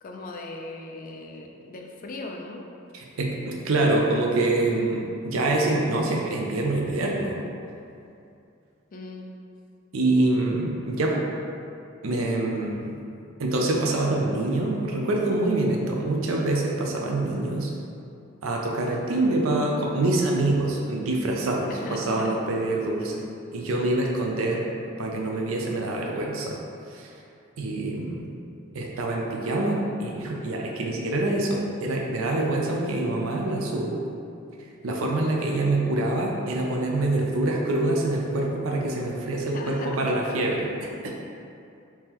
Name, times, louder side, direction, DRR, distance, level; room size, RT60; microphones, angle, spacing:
voice 1, 0.0-2.6 8.9-9.3 21.7-22.3 39.5-40.0, left 2 dB, 40° left, 1 dB, 0.4 m, -38 dB
voice 2, 2.9-7.4 9.9-11.3 12.0-12.9 13.4-17.7 18.4-23.2 23.5-24.6 25.0-26.6 26.9-27.1 27.6-28.3 28.7-34.0 34.8-40.7 41.0-41.1, right 2 dB, 80° right, -1 dB, 0.5 m, -25 dB
3.6 x 2.9 x 2.9 m, 2.5 s
head